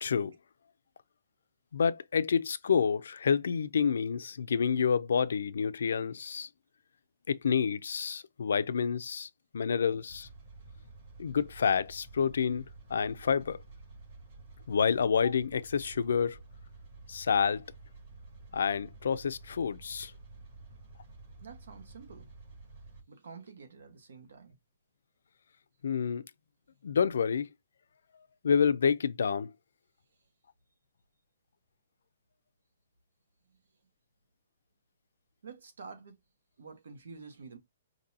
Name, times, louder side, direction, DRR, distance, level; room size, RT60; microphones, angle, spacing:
voice 1, 0.0-0.3 1.7-6.5 7.3-9.3 9.5-10.3 11.2-12.6 12.9-13.6 14.7-16.4 17.1-17.6 18.5-20.1 25.8-26.2 26.8-27.5 28.4-29.5, left 6 dB, 75° left, 0.5 m, -28 dB
sound 1, 10.1-23.0, right 3 dB, 40° right, 2.8 m, -51 dB
voice 2, 21.4-22.3 23.1-24.5 35.4-36.1 36.6-37.6, right 5 dB, 80° right, 1.5 m, -48 dB
5.3 x 2.8 x 2.8 m
hypercardioid pair, 175°, 0 cm